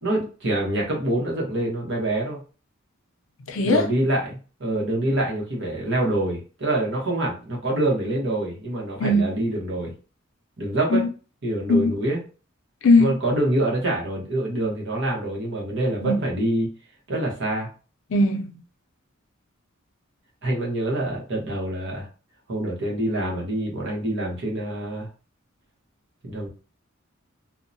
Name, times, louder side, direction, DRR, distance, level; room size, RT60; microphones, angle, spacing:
voice 1, 0.0-2.4 3.6-9.9 10.6-11.0 11.4-12.2 13.0-16.7 17.1-17.7 20.4-22.1 22.5-25.1 26.2-26.5, right 1 dB, 65° right, 1.0 m, -26 dB
voice 2, 3.5-3.9 9.0-9.2 10.9-11.0 11.7-11.9 12.8-13.1 16.0-16.2 18.1-18.6, left 2 dB, 70° left, 0.5 m, -19 dB
2.7 x 2.1 x 2.6 m
head